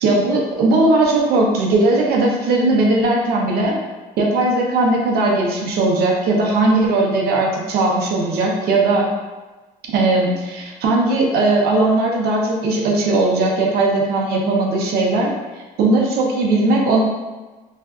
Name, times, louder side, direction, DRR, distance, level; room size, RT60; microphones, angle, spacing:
voice 1, 0.0-3.8 4.2-9.1 9.9-17.0, right 2 dB, 70° right, -1 dB, 0.6 m, -18 dB
2.5 x 2.3 x 2.3 m, 1.2 s
cardioid pair, 110°, 17 cm